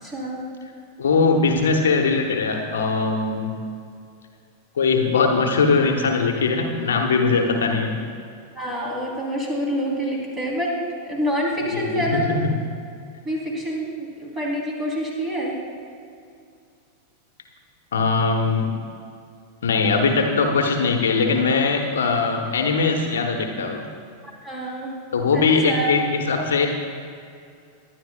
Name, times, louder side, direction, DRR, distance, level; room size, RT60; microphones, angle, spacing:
voice 1, 0.0-0.4 8.5-10.8 11.0-12.2 13.2-15.6 24.4-24.9 25.3-25.9, equal, 15° right, -2 dB, 3.4 m, -27 dB
voice 2, 1.0-3.5 4.8-7.9 11.7-12.4 17.9-18.7 19.6-23.9 25.1-26.7, left 4 dB, 65° left, 3 dB, 1.1 m, -21 dB
22.5 x 10.5 x 2.3 m, 2.4 s
figure-of-eight pair, 90°, 0 cm